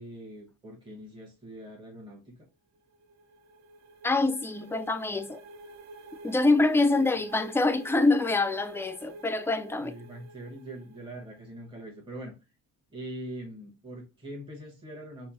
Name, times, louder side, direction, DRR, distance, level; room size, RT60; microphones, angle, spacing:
voice 1, 0.0-2.3 9.8-12.3 12.9-15.3, right 1 dB, 15° right, 1.2 m, -42 dB
sound 1, 2.8-11.4, right 2 dB, 60° right, 0.7 m, -48 dB
voice 2, 4.0-5.4 6.2-10.0, left 2 dB, 10° left, 0.3 m, -25 dB
4.2 x 2.0 x 2.8 m
cardioid pair, 90°, 30 cm